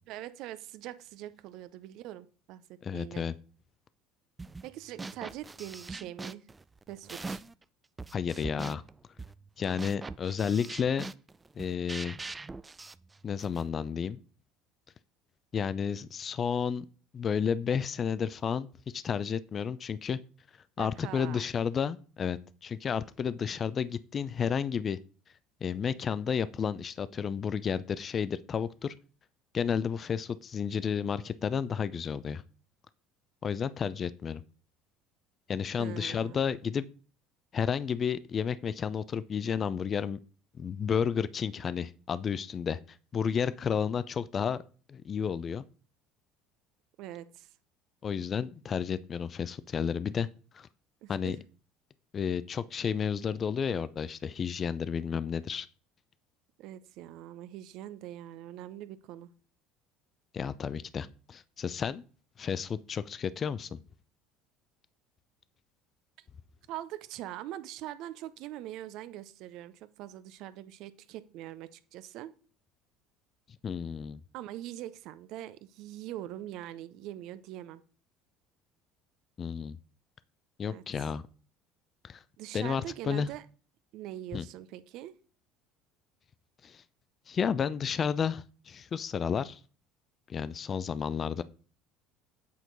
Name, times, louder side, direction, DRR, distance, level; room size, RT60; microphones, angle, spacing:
voice 1, 0.1-3.3 4.6-6.5 6.9-7.4 20.8-21.4 35.8-36.4 47.0-47.5 51.0-51.3 56.6-59.3 66.7-72.3 74.3-77.8 80.7-80.8 82.4-83.4 83.9-85.2, right 13 dB, 65° right, 15 dB, 0.6 m, -43 dB
voice 2, 2.8-3.3 8.1-8.8 9.6-11.0 11.6-12.2 13.2-14.2 15.5-16.8 17.1-20.2 20.8-25.0 25.6-28.9 29.5-32.4 33.4-34.4 35.5-36.8 37.5-40.2 40.6-44.6 44.9-45.6 48.0-50.3 50.5-50.7 51.1-51.4 52.1-55.7 60.3-62.0 62.4-63.8 73.6-74.2 79.4-79.8 80.6-81.2 82.0-82.2 82.5-83.3 84.3-84.4 86.6-86.8 87.3-89.6 90.3-91.4, left 7 dB, 40° left, 16 dB, 0.5 m, -31 dB
sound 1, 4.4-4.7 5.0-7.6 8.0-13.7, right 3 dB, 20° right, 0.4 m, -42 dB
8.3 x 4.4 x 4.0 m, 0.38 s
hypercardioid pair, 70°, 0 cm